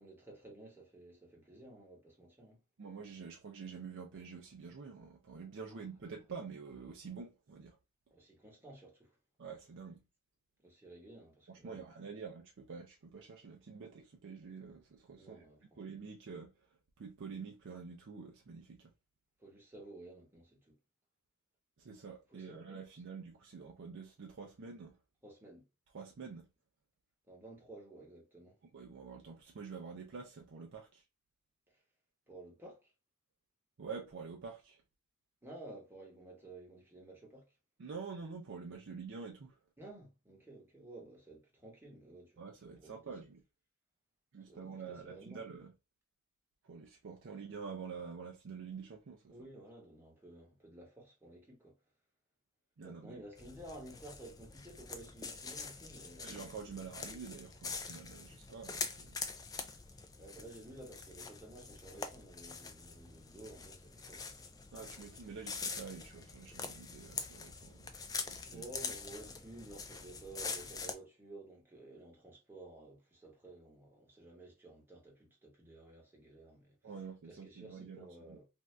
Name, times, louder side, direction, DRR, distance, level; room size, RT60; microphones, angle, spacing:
voice 1, 0.0-2.6 5.7-5.8 8.1-9.2 10.6-11.9 15.2-15.8 19.4-20.8 22.3-22.6 25.2-25.6 27.3-28.6 31.7-31.8 32.3-32.9 35.4-37.5 39.8-43.1 44.5-45.4 49.3-51.7 52.8-56.4 60.0-64.6 68.4-76.9 77.2-78.5, right 2 dB, 10° right, 1.1 m, -53 dB
voice 2, 2.8-7.8 9.4-10.0 11.6-15.5 15.8-16.5 17.0-18.9 21.8-25.0 25.9-26.5 28.7-31.0 33.8-34.8 37.8-39.6 42.4-43.4 44.3-45.7 46.6-49.3 52.8-53.2 56.2-59.2 64.7-67.9 68.3-68.6 76.8-78.4, right 5 dB, 55° right, 0.5 m, -47 dB
sound 1, 53.4-70.9, left 4 dB, 15° left, 0.3 m, -45 dB
2.6 x 2.3 x 3.1 m
head